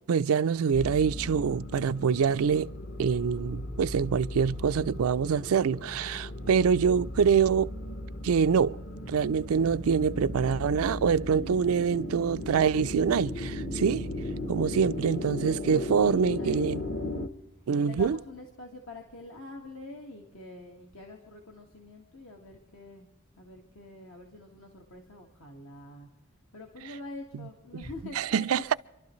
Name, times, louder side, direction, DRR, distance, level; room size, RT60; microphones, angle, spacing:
voice 1, 0.0-2.7 3.0-7.7 8.2-8.8 9.1-14.1 14.5-16.8 17.7-18.2 28.2-28.7, right 6 dB, 85° right, 0.4 m, -25 dB
sound 1, 0.7-17.3, left 1 dB, 45° left, 0.9 m, -37 dB
voice 2, 6.1-6.6 11.3-12.2 14.3-14.6 15.4-16.8 17.7-23.1 23.4-26.1 26.5-28.8, left 2 dB, 75° left, 1.7 m, -46 dB
27.5 x 12.0 x 3.1 m
head